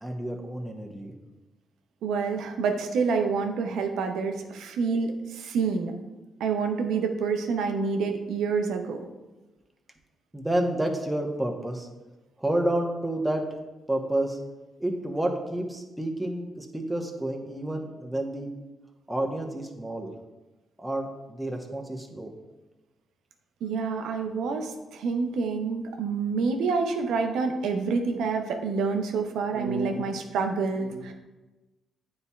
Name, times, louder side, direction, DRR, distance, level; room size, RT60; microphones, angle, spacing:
voice 1, 0.0-1.1 10.3-11.9 12.4-13.4 13.9-14.4 14.8-18.5 19.1-20.1 20.8-22.3, right 1 dB, 10° right, 0 dB, 1.1 m, -29 dB
voice 2, 2.0-5.9 6.4-9.0 23.6-31.1, right 4 dB, 80° right, 5 dB, 0.6 m, -27 dB
9.4 x 4.3 x 2.4 m, 1.1 s
supercardioid pair, 50°, 0 cm